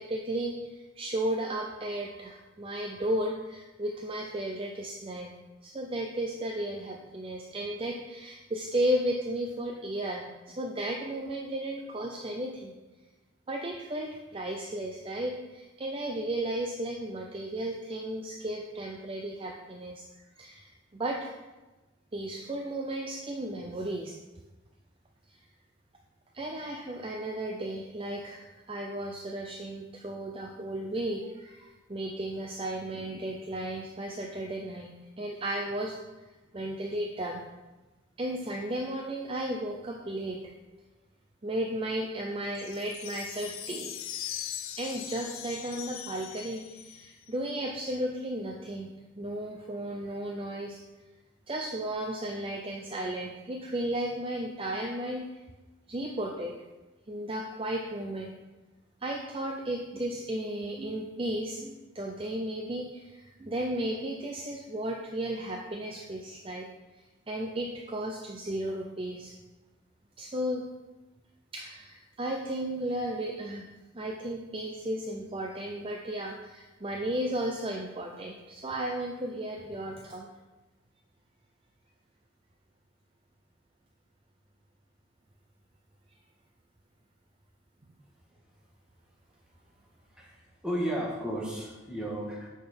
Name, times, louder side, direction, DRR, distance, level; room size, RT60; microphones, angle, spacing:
voice 1, 0.0-5.3 5.6-12.7 13.5-20.0 20.4-21.3 22.1-24.1 25.3-25.4 26.3-36.0 36.5-37.4 38.2-40.4 41.4-43.9 44.8-48.9 49.2-50.8 51.5-55.3 55.9-56.5 57.1-58.3 59.0-66.7 67.3-69.3 70.2-70.6 71.5-73.6 73.9-80.3, right 1 dB, 25° right, 1 dB, 0.5 m, -34 dB
sound 1, 42.6-47.3, left 10 dB, 85° left, 0.6 m, -40 dB
voice 2, 90.1-92.5, equal, 5° right, -4 dB, 1.6 m, -34 dB
8.4 x 6.1 x 4.4 m, 1.1 s
head